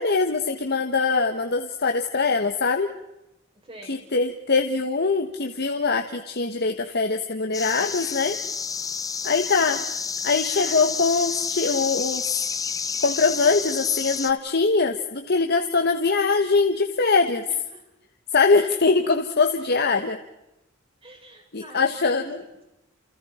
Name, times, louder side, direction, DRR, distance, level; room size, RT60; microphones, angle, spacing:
voice 1, 0.0-2.9 3.9-8.4 9.2-9.8 10.2-12.5 13.0-17.4 18.3-20.2 21.5-22.4, left 4 dB, 50° left, 5 dB, 1.3 m, -22 dB
voice 2, 3.5-4.0 17.4-17.9 18.6-18.9 19.5-19.9 21.0-22.6, right 1 dB, 30° right, 0 dB, 6.6 m, -47 dB
sound 1, 7.5-14.3, left 5 dB, 15° left, 0.7 m, -29 dB
29.5 x 29.0 x 4.4 m, 0.91 s
head